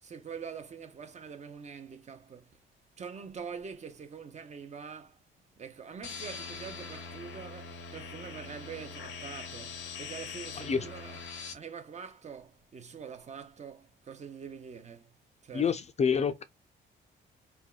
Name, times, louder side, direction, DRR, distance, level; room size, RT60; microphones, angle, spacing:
voice 1, 0.0-2.6 3.0-5.2 5.6-11.2 11.5-15.2 15.4-15.8, right 6 dB, 35° right, 0.5 m, -44 dB
sound 1, 6.0-11.5, left 5 dB, 75° left, 0.7 m, -42 dB
voice 2, 15.5-16.4, left 6 dB, 35° left, 0.4 m, -28 dB
3.4 x 2.1 x 2.2 m
cardioid pair, 90°, 20 cm